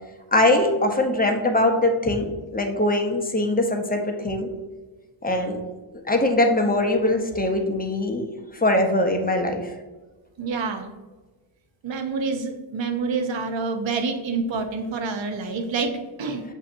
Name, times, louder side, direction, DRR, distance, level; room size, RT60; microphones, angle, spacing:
voice 1, 0.3-4.5 5.2-5.6 6.1-8.2 8.6-9.6, left 1 dB, 20° left, 3 dB, 0.6 m, -22 dB
voice 2, 10.4-10.9 11.8-16.4, right 4 dB, 65° right, 5 dB, 0.6 m, -27 dB
7.0 x 2.7 x 2.5 m, 1.2 s
cardioid pair, 60°, 49 cm